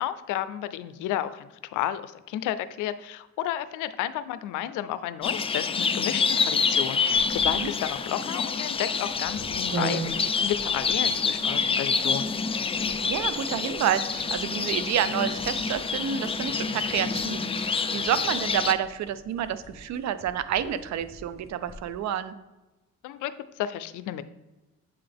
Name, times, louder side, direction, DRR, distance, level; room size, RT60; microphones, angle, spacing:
voice 1, 0.0-12.3 23.0-24.2, left 12 dB, 90° left, 14 dB, 0.5 m, -32 dB
sound 1, 5.2-18.7, left 5 dB, 20° left, 0.3 m, -27 dB
sound 2, 7.1-22.0, right 2 dB, 30° right, 1.3 m, -42 dB
voice 2, 13.0-22.4, right 9 dB, 65° right, 13 dB, 0.5 m, -29 dB
7.8 x 3.8 x 3.4 m, 1.1 s
cardioid pair, 90°, 30 cm